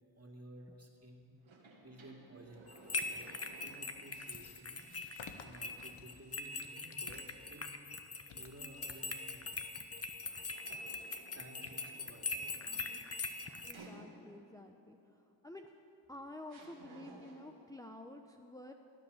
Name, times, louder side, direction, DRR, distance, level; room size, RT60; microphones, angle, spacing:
voice 1, 0.2-1.3 1.8-3.3 3.6-4.9 5.4-7.8 8.3-9.7 11.3-12.5, right 1 dB, 35° right, 1 dB, 2.4 m, -55 dB
sound 1, 1.4-4.3 4.8-4.9 10.2-14.6 15.7-15.8 16.5-17.7, right 2 dB, 85° right, 2.1 m, -57 dB
sound 2, 2.4-11.1, left 5 dB, 90° left, 1.0 m, -58 dB
sound 3, 2.7-13.7, left 3 dB, 30° left, 1.0 m, -42 dB
voice 2, 13.7-15.0 15.4-15.7 16.1-18.7, left 1 dB, 10° left, 3 dB, 0.7 m, -50 dB
15.5 x 9.7 x 7.1 m, 2.9 s
cardioid pair, 50°, 46 cm